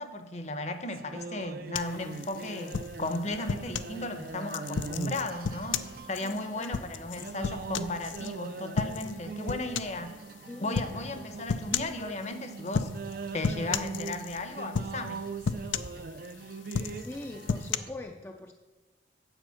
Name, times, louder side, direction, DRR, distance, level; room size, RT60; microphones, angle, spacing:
voice 1, 0.0-10.2 10.6-12.9 13.3-15.2, left 2 dB, 35° left, 9 dB, 0.8 m, -35 dB
sound 1, 0.9-17.9, right 4 dB, 50° right, 0.4 m, -42 dB
sound 2, 1.7-4.0 4.5-8.3 8.8-9.2 9.5-10.0 10.7-11.0 11.5-12.0 12.7-13.1 13.4-14.4 14.7-15.1 15.4-16.3 16.7-17.8, left 6 dB, 85° left, 0.5 m, -33 dB
voice 2, 6.6-6.9 10.5-10.8 16.9-18.5, left 2 dB, 15° left, 3 dB, 0.4 m, -42 dB
9.0 x 7.8 x 5.7 m, 1.2 s
head